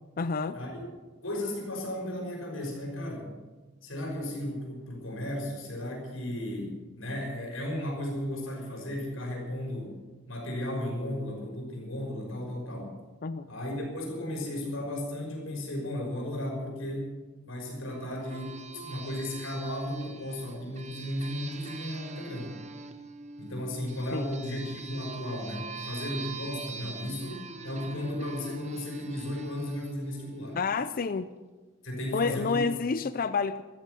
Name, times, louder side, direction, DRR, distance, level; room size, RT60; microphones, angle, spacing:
voice 1, 0.2-0.6 13.2-13.5 24.1-24.3 30.5-31.3 32.1-33.6, left 4 dB, 45° left, 13 dB, 0.5 m, -29 dB
voice 2, 1.2-3.3 3.8-9.9 10.3-12.9 13.5-17.2 17.4-22.6 23.4-30.6 31.8-32.6, left 1 dB, 85° left, 0 dB, 5.9 m, -35 dB
sound 1, 17.9-31.1, right 4 dB, 35° right, 0.9 m, -44 dB
14.5 x 14.0 x 6.8 m, 1.3 s
head